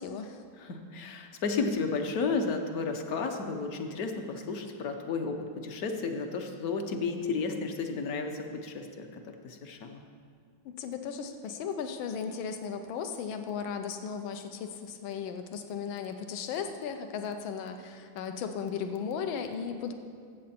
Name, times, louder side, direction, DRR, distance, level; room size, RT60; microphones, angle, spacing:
voice 1, 0.0-0.4 10.8-19.9, left 6 dB, 85° left, 7 dB, 1.5 m, -36 dB
voice 2, 0.6-9.1 9.4-10.0, left 4 dB, 60° left, 5 dB, 1.0 m, -32 dB
14.0 x 7.8 x 4.2 m, 2.1 s
omnidirectional pair, 2.2 m